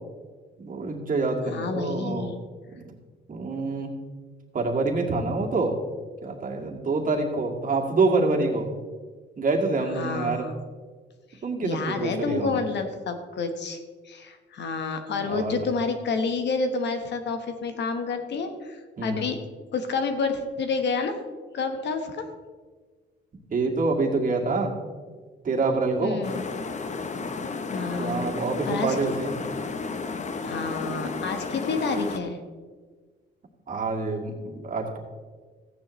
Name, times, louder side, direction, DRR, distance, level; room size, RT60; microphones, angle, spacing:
voice 1, 0.6-2.3 2.7-2.8 3.3-3.9 4.5-5.7 6.2-8.7 9.4-10.6 11.4-12.6 15.1-15.7 19.0-19.2 23.5-24.7 25.4-26.2 28.0-29.4 33.7-35.0, right 3 dB, 45° right, 0 dB, 2.2 m, -26 dB
voice 2, 1.5-2.3 10.0-10.6 11.6-13.8 14.0-19.4 19.7-21.2 21.5-22.2 26.0-26.5 27.7-28.3 28.6-29.2 30.4-32.4, left 4 dB, 65° left, 7 dB, 1.3 m, -29 dB
sound 1, 26.2-32.2, left 4 dB, 35° left, 0.9 m, -33 dB
14.5 x 9.7 x 3.2 m, 1.5 s
cardioid pair, 90°, 20 cm